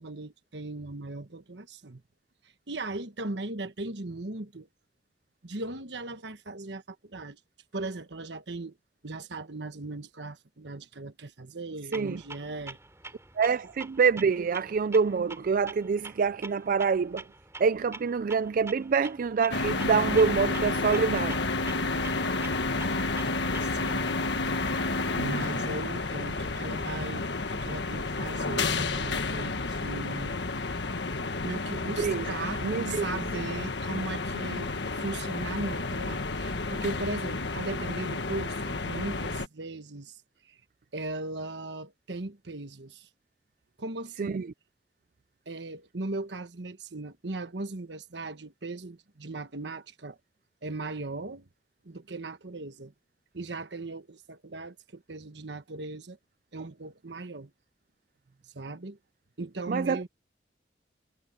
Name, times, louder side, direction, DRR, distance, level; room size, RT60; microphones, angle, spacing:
voice 1, 0.0-2.0 2.7-4.7 5.4-7.4 7.7-8.7 9.0-12.8 23.6-24.1 25.1-30.4 31.4-40.2 40.5-40.6 40.9-43.1 43.8-44.4 45.5-50.2 50.6-51.5 51.8-52.9 53.3-56.2 56.5-57.5 58.5-59.0 59.4-60.1, right 2 dB, 70° right, 1.3 m, -38 dB
Clock, 11.9-23.9, right 2 dB, 15° right, 3.3 m, -46 dB
voice 2, 13.4-17.2 17.6-21.4 32.0-32.3 32.6-33.2 44.2-44.5 59.7-60.1, right 5 dB, 50° right, 0.4 m, -26 dB
sound 1, 19.5-39.5, left 3 dB, 75° left, 1.6 m, -31 dB
head